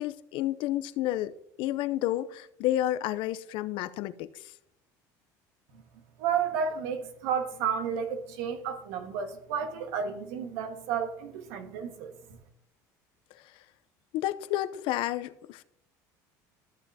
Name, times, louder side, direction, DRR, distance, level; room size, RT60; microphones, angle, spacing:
voice 1, 0.0-4.5 14.1-15.6, left 14 dB, 65° left, 0.6 m, -31 dB
voice 2, 6.2-12.2, right 7 dB, 75° right, 1.5 m, -32 dB
13.5 x 7.2 x 2.7 m
supercardioid pair, 85°, 9 cm